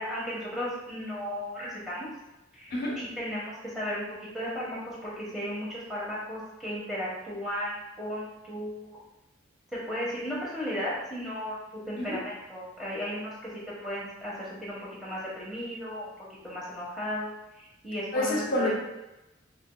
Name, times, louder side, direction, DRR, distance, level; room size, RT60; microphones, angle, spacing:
voice 1, 0.0-2.1 2.5-4.0 4.3-9.0 9.7-11.6 11.8-13.3 13.8-16.1 16.4-17.3 17.6-18.7, equal, ahead, -8 dB, 1.3 m, -35 dB
voice 2, 2.7-3.0 12.0-12.2 18.1-18.7, left 1 dB, 50° left, -3 dB, 1.1 m, -28 dB
5.1 x 2.8 x 2.3 m, 0.95 s
head